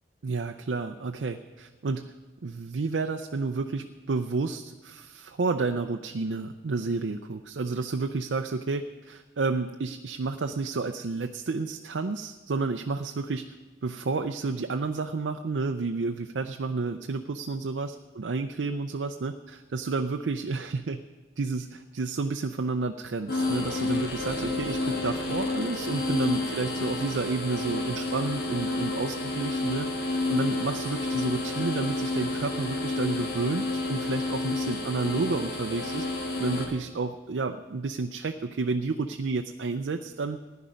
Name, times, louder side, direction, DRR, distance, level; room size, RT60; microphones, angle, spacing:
voice 1, 0.2-2.1 2.4-13.5 13.8-21.0 21.4-36.1 36.4-40.4, right 3 dB, 75° right, 6 dB, 0.5 m, -31 dB
sound 1, 23.3-36.6, left 2 dB, 55° left, 2.3 m, -30 dB
16.0 x 10.5 x 5.1 m, 1.2 s
head